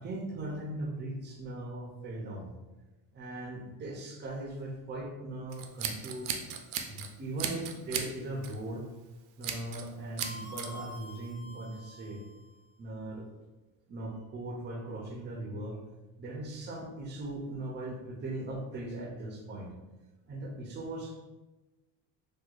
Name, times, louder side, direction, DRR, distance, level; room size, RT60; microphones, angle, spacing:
voice 1, 0.0-2.5 3.1-6.4 6.9-8.9 9.4-12.2 12.8-13.3 13.9-15.8 16.2-19.7 20.3-21.1, right 1 dB, 25° right, 1 dB, 0.5 m, -39 dB
Scissors, 5.5-7.1 7.4-8.1 8.4-8.7 9.4-9.9 10.2-10.7, right 8 dB, 80° right, 0.6 m, -35 dB
sound 1, 10.2-12.6, left 1 dB, 25° left, 0.6 m, -47 dB
4.5 x 2.2 x 2.4 m, 1.1 s
cardioid pair, 140°, 43 cm